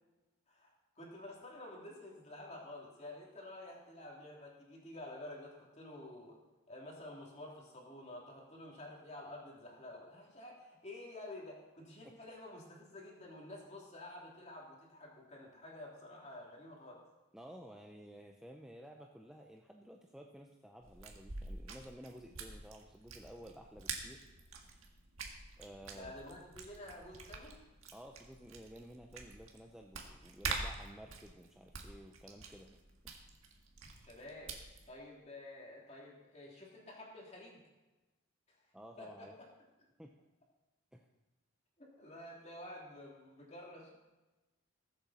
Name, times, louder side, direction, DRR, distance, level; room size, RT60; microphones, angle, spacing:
voice 1, 0.5-6.4 6.7-17.0 25.9-27.6 34.1-34.6 34.9-37.6 38.5-38.6 39.0-39.5 41.8-44.0, left 1 dB, 30° left, -2 dB, 2.9 m, -50 dB
voice 2, 17.3-24.2 25.6-26.1 27.9-32.8 38.7-39.3 40.0-40.1 40.9-41.1, equal, 5° right, 1 dB, 0.5 m, -53 dB
sound 1, 20.8-34.9, right 4 dB, 75° right, 1.8 m, -46 dB
20.5 x 7.9 x 4.2 m, 1.1 s
head